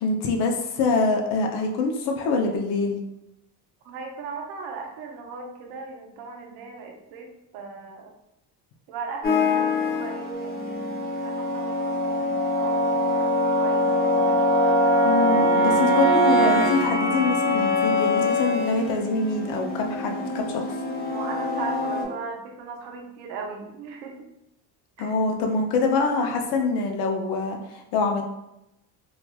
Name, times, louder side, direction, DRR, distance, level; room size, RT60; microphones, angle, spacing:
voice 1, 0.0-3.0 15.0-20.6 25.0-28.2, left 3 dB, 70° left, 3 dB, 0.7 m, -25 dB
voice 2, 3.8-8.1 8.9-10.9 11.2-14.3 21.1-24.2 25.0-25.2, right 4 dB, 90° right, 2 dB, 0.7 m, -38 dB
sound 1, 9.2-22.0, left 1 dB, 25° left, 0.6 m, -23 dB
3.1 x 2.4 x 2.3 m, 0.88 s
cardioid pair, 115°, 41 cm